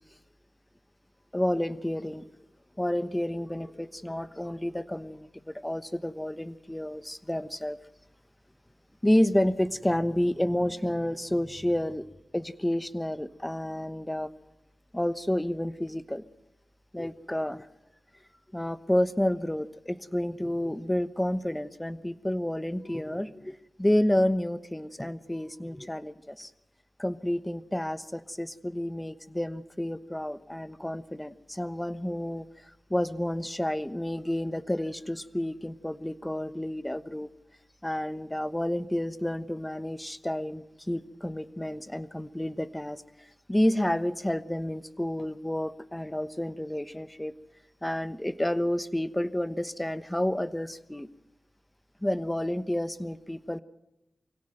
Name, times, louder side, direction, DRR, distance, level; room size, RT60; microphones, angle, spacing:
voice 1, 1.3-2.2 2.8-5.3 5.5-7.8 9.0-12.0 12.3-14.3 14.9-16.2 16.9-17.7 18.5-26.5 27.0-37.3 37.8-47.3 47.8-51.1 52.0-53.6, left 1 dB, 15° left, 13 dB, 1.1 m, -30 dB
24.0 x 17.0 x 7.9 m, 0.91 s
cardioid pair, 50°, 0 cm